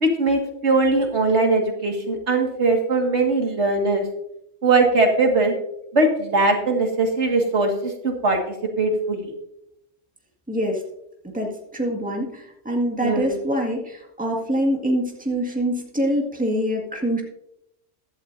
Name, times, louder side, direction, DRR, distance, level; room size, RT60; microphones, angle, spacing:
voice 1, 0.0-4.0 4.6-5.5 5.9-9.3 13.0-13.3, right 3 dB, 60° right, 2 dB, 2.2 m, -20 dB
voice 2, 10.5-10.8 11.2-17.2, equal, 5° right, 0 dB, 1.8 m, -25 dB
15.5 x 11.5 x 2.7 m, 0.81 s
omnidirectional pair, 1.3 m